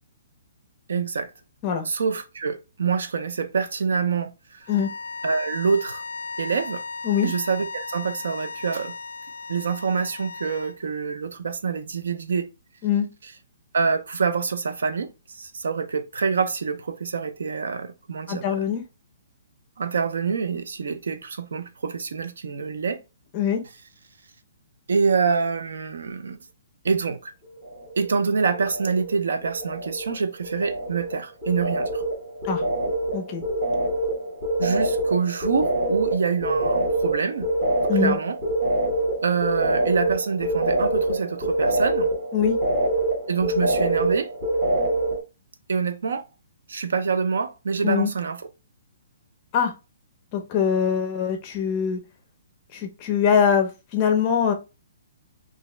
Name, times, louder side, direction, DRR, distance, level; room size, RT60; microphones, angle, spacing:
voice 1, 0.9-1.3 1.8-4.7 5.2-6.0 6.4-6.8 7.2-9.0 9.5-12.5 13.7-18.6 19.8-23.0 24.9-26.4 26.8-27.3 28.0-32.0 34.6-37.5 37.9-38.4 39.2-42.1 43.3-44.3 45.7-46.3 46.7-48.5, right 5 dB, 80° right, 0.5 m, -26 dB
sound 1, 4.6-10.8, left 4 dB, 65° left, 0.4 m, -36 dB
voice 2, 18.3-18.8 23.3-23.6 32.4-32.6 33.1-33.4 37.9-38.2 42.3-42.5 47.8-48.1 49.5-49.7 50.3-52.0 52.7-54.5, left 7 dB, 20° left, 0.6 m, -22 dB
sound 2, 27.6-28.1 28.4-29.2 29.4-45.2, right 1 dB, 15° right, 1.2 m, -25 dB
3.0 x 2.7 x 3.2 m
hypercardioid pair, 175°, 0 cm